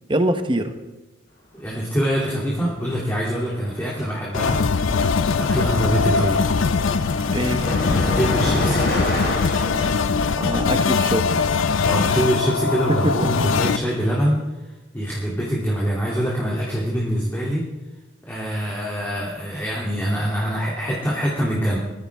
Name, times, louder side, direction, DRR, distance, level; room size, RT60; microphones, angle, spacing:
voice 1, 0.1-0.8 7.3-7.7 10.3-11.5 12.0-12.2 13.0-13.2, right 1 dB, 25° right, 8 dB, 1.0 m, -24 dB
voice 2, 1.5-4.8 5.3-6.4 8.0-8.8 11.8-14.4 14.9-17.6 18.3-21.8, equal, 10° left, -6 dB, 2.7 m, -24 dB
Car passing by, 2.4-2.7 2.9-9.9, left 1 dB, 50° left, 3.4 m, -29 dB
sound 1, 4.3-13.8, left 5 dB, 85° left, 0.5 m, -21 dB
22.0 x 14.5 x 3.6 m, 1.1 s
head